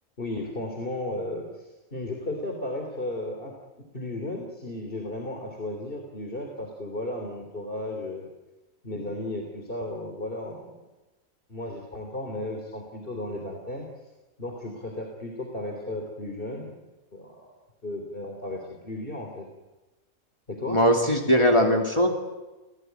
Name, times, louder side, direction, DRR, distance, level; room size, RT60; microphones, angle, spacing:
voice 1, 0.2-3.5 3.9-8.3 8.8-10.8 11.5-13.9 14.4-16.8 17.1-17.5 17.8-19.5 20.5-20.8, left 1 dB, 40° left, 2 dB, 3.5 m, -34 dB
voice 2, 20.7-22.1, equal, 20° left, 1 dB, 2.8 m, -20 dB
29.0 x 18.0 x 9.4 m, 1.1 s
omnidirectional pair, 1.4 m